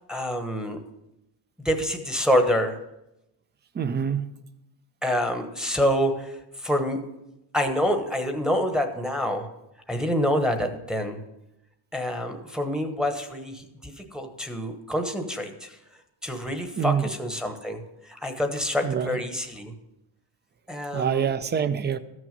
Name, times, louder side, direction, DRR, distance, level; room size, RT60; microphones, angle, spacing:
voice 1, 0.1-0.8 1.6-2.8 5.0-7.0 7.5-9.5 9.9-11.2 11.9-15.8 16.2-19.7 20.7-21.3, equal, ahead, 5 dB, 1.1 m, -27 dB
voice 2, 3.7-4.3 16.8-17.1 18.8-19.2 20.9-22.0, right 7 dB, 25° right, 13 dB, 0.5 m, -26 dB
13.5 x 6.3 x 5.3 m, 0.89 s
cardioid pair, 115°, 45 cm